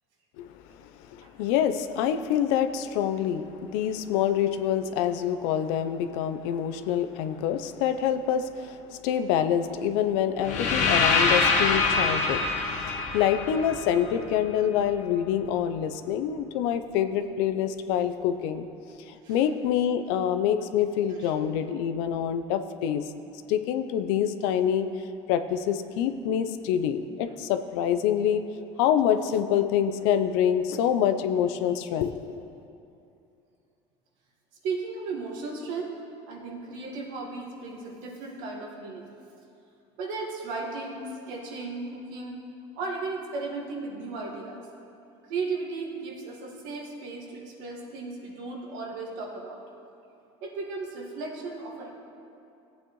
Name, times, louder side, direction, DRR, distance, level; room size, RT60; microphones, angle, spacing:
voice 1, 1.1-12.4 12.9-18.6 19.1-23.1 23.5-24.9 25.3-28.4 28.8-32.4, left 9 dB, 80° left, 10 dB, 0.6 m, -26 dB
sound 1, 10.4-14.4, left 4 dB, 60° left, 1.4 m, -25 dB
voice 2, 34.6-36.0 36.3-39.1 40.0-42.4 42.8-44.7 45.3-49.6 50.4-51.9, right 3 dB, 75° right, -1 dB, 1.9 m, -35 dB
15.5 x 8.4 x 3.1 m, 2.6 s
supercardioid pair, 90°, 14 cm